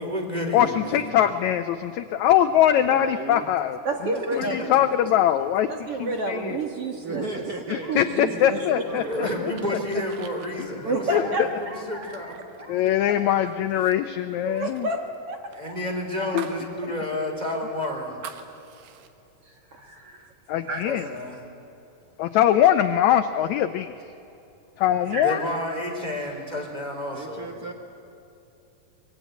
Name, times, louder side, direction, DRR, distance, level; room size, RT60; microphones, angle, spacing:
voice 1, 0.0-1.2 4.3-4.5 9.0-12.3 15.5-18.2 20.9-21.5 25.1-27.6, left 1 dB, 10° right, 2 dB, 3.5 m, -31 dB
voice 2, 0.5-3.8 4.4-5.7 6.0-6.6 7.7-9.5 11.1-11.2 12.7-14.9 16.3-16.4 20.5-21.1 22.2-23.9 24.8-25.4, left 11 dB, 75° left, 10 dB, 1.7 m, -22 dB
voice 3, 2.7-3.5 6.9-9.3 10.7-11.4 27.1-27.7, right 3 dB, 70° right, 3 dB, 0.8 m, -36 dB
voice 4, 3.8-4.8 5.7-7.2 7.9-9.0 10.8-12.7 14.4-15.0 15.3-15.4 15.7-15.8 16.2-16.3 19.7-20.3 20.7-20.8 25.1-25.4, right 2 dB, 50° right, 3 dB, 2.2 m, -30 dB
sound 1, 8.7-13.3 13.6-14.0 14.2-16.7 17.0-17.1 17.5-19.1, right 8 dB, 85° right, 3.1 m, -45 dB
24.5 x 22.0 x 9.3 m, 2.8 s
omnidirectional pair, 4.0 m